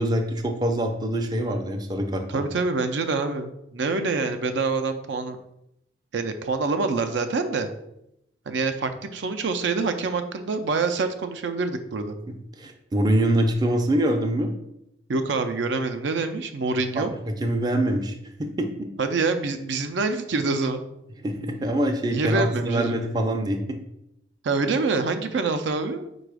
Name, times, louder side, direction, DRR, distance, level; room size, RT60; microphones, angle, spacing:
voice 1, 0.0-2.4 12.3-14.5 17.0-18.9 21.2-23.8, right 1 dB, 20° right, 4 dB, 0.4 m, -25 dB
voice 2, 2.3-5.4 6.1-7.7 8.5-12.2 15.1-17.1 19.0-20.8 22.1-23.1 24.4-26.0, right 3 dB, 75° right, 8 dB, 0.4 m, -26 dB
4.8 x 2.3 x 4.7 m, 0.80 s
head